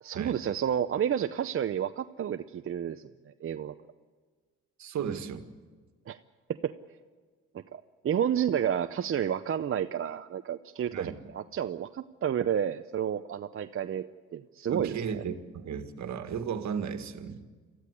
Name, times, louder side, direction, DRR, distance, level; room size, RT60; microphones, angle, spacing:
voice 1, 0.0-3.7 6.1-6.2 6.6-6.7 7.7-15.0, right 9 dB, 45° right, 8 dB, 0.7 m, -31 dB
voice 2, 4.8-5.5 10.9-11.1 14.7-17.4, right 7 dB, 65° right, 8 dB, 1.9 m, -35 dB
24.0 x 14.5 x 9.8 m, 1.5 s
cardioid pair, 90°, 30 cm